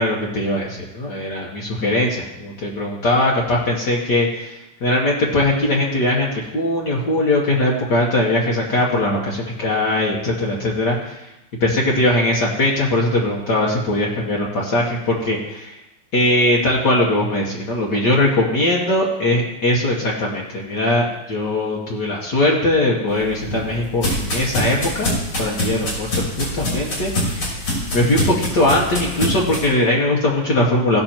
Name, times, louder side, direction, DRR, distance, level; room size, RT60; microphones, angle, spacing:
voice 1, 0.0-11.3 11.6-15.8 16.1-25.1 25.4-27.6 27.9-31.0, left 1 dB, 55° left, -4 dB, 1.9 m, -20 dB
sound 1, 23.1-29.7, left 1 dB, 85° left, 4.2 m, -25 dB
16.0 x 6.3 x 4.4 m, 0.93 s
omnidirectional pair, 2.3 m